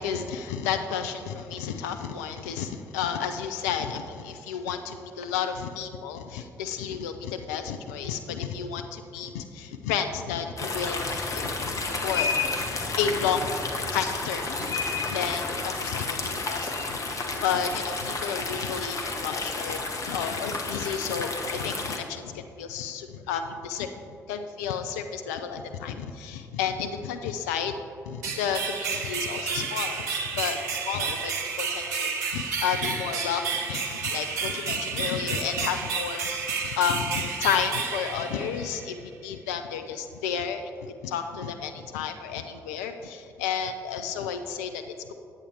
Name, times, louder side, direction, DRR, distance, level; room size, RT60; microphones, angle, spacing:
voice 1, 0.0-12.3 13.0-14.8 15.1-19.8 20.1-23.9 24.3-27.7 28.1-31.3 31.6-45.1, left 7 dB, 80° left, 7 dB, 0.4 m, -32 dB
sound 1, 10.6-22.0, left 3 dB, 40° left, 1.1 m, -31 dB
sound 2, 28.2-38.9, right 5 dB, 85° right, 0.6 m, -31 dB
8.7 x 8.4 x 3.3 m, 2.5 s
figure-of-eight pair, 45°, 9 cm